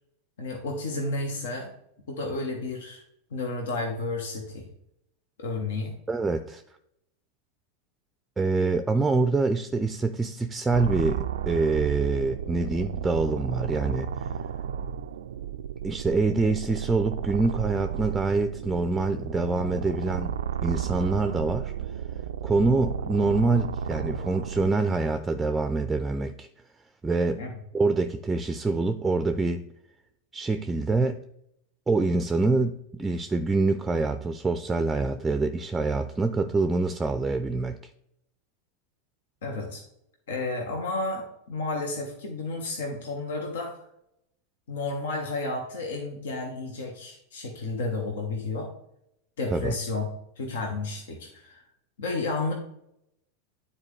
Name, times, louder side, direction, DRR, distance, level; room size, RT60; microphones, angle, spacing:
voice 1, 0.4-1.7 2.1-3.0 3.3-4.7 5.4-5.9 27.4-27.5 39.4-39.8 40.3-43.8 44.7-48.7 49.4-50.1 50.4-51.6 52.0-52.5, left 3 dB, 75° left, 1 dB, 1.4 m, -32 dB
voice 2, 6.1-6.6 8.4-14.3 15.8-20.3 20.6-21.7 22.4-26.5 27.0-27.4 27.7-29.6 30.3-31.2 31.9-37.8 49.5-49.7, right 3 dB, 15° right, 9 dB, 0.5 m, -25 dB
sound 1, 10.7-24.7, right 8 dB, 80° right, 0.3 m, -33 dB
9.6 x 4.3 x 3.3 m, 0.76 s
hypercardioid pair, 95°, 0 cm